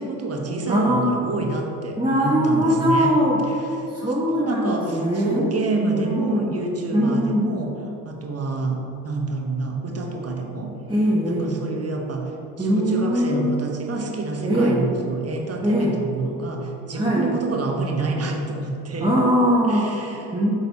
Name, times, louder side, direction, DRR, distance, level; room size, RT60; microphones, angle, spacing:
voice 1, 0.0-3.1 3.5-3.7 4.0-7.7 8.0-10.7 11.2-12.3 12.6-19.1 19.7-20.4, right 3 dB, 35° right, 0 dB, 1.2 m, -28 dB
voice 2, 0.7-1.1 2.0-3.4 3.9-5.5 5.9-6.5 6.9-7.5 10.9-11.6 12.6-13.5 14.4-14.9 15.6-16.0 16.9-17.3 19.0-20.0 20.3-20.5, equal, 10° right, -6 dB, 1.0 m, -21 dB
7.0 x 4.0 x 4.1 m, 2.9 s
hypercardioid pair, 50°, 44 cm